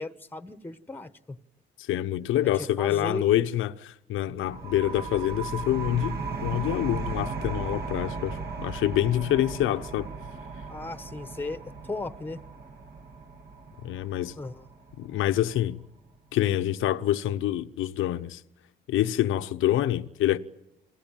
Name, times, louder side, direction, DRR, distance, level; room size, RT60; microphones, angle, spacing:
voice 1, 0.0-1.4 2.5-3.5 10.7-12.4 14.4-14.7, left 2 dB, 10° left, 1.1 m, -36 dB
voice 2, 1.8-10.1 13.8-14.4 15.0-15.8 16.3-18.4 18.9-20.4, left 13 dB, 85° left, 0.9 m, -26 dB
sound 1, 4.4-15.8, right 4 dB, 55° right, 2.0 m, -36 dB
28.5 x 20.0 x 9.1 m
cardioid pair, 90°, 20 cm